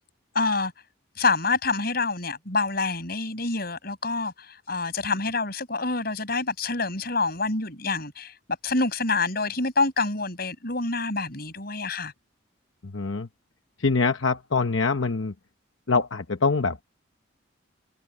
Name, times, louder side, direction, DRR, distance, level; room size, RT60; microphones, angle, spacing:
voice 1, 0.3-0.7 1.2-8.3 8.6-12.1, left 3 dB, 50° left, 7.1 m, -27 dB
voice 2, 12.8-13.3 13.8-15.3 15.9-16.8, left 4 dB, 75° left, 1.0 m, -24 dB
head